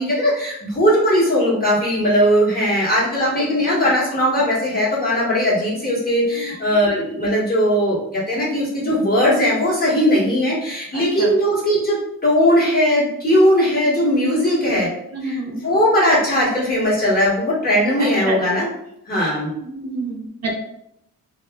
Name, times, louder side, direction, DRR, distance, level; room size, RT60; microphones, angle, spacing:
voice 1, 0.0-14.9 15.2-18.7 19.1-19.5, equal, 25° left, -6 dB, 1.1 m, -19 dB
voice 2, 10.9-11.3 15.1-15.5 18.0-18.4 19.5-20.5, right 2 dB, 50° right, -1 dB, 0.5 m, -28 dB
2.6 x 2.3 x 2.2 m, 0.76 s
cardioid pair, 100°, 33 cm